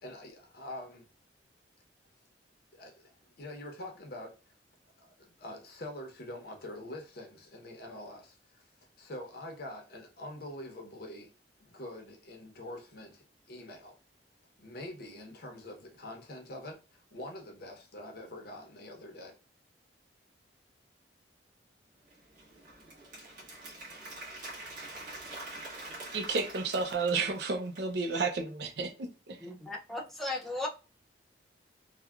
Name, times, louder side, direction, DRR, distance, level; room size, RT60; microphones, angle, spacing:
voice 1, 0.0-1.1 2.7-4.5 5.0-8.6 9.0-11.3 11.6-13.2 13.5-14.0 14.6-19.3, left 1 dB, 55° left, 0.8 m, -45 dB
Applause, 22.1-27.9, right 2 dB, 45° right, 1.4 m, -45 dB
voice 2, 26.1-29.4, right 4 dB, 65° right, 0.6 m, -32 dB
voice 3, 29.4-30.7, left 2 dB, ahead, 0.5 m, -36 dB
3.3 x 2.2 x 2.3 m
head